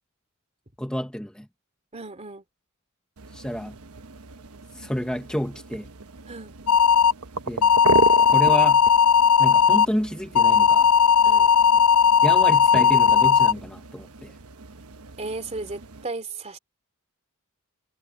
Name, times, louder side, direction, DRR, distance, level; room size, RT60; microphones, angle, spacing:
voice 1, 0.8-1.5 3.3-3.7 4.7-5.9 7.5-7.7 8.3-8.8 9.4-10.9 12.2-14.3, equal, 5° left, 0.8 m, -29 dB
voice 2, 1.9-2.4 6.3-6.5 11.2-11.5 15.2-16.6, right 3 dB, 30° right, 2.7 m, -35 dB
sound 1, 3.2-16.0, right 4 dB, 85° right, 1.1 m, -34 dB
sound 2, 6.7-7.1 7.6-9.9 10.3-13.5, left 7 dB, 75° left, 0.4 m, -17 dB
head